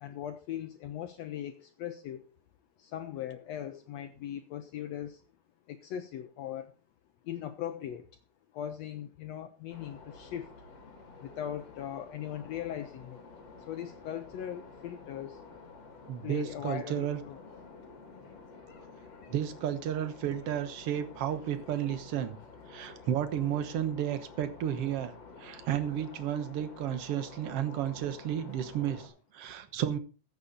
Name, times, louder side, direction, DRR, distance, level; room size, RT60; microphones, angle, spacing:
voice 1, 0.0-2.3 2.8-5.2 5.7-6.7 7.3-8.0 8.5-10.5 11.2-13.2 13.7-15.4 16.2-17.4, left 10 dB, 75° left, 1.6 m, -39 dB
sound 1, 9.7-29.1, left 4 dB, 50° left, 4.0 m, -50 dB
voice 2, 16.1-17.2 19.3-22.4 22.7-25.1 25.4-30.0, right 10 dB, 60° right, 1.7 m, -32 dB
14.5 x 8.5 x 4.0 m
omnidirectional pair, 3.8 m